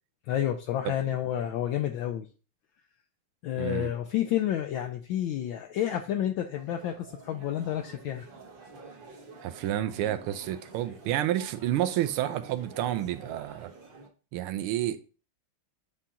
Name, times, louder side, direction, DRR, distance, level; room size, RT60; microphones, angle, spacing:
voice 1, 0.3-2.3 3.4-8.3, left 11 dB, 75° left, 1.3 m, -30 dB
voice 2, 3.6-3.9 9.4-13.7 14.3-15.0, right 12 dB, 85° right, 1.5 m, -30 dB
sound 1, 6.5-14.1, right 3 dB, 40° right, 0.8 m, -49 dB
9.7 x 3.8 x 2.8 m
omnidirectional pair, 2.3 m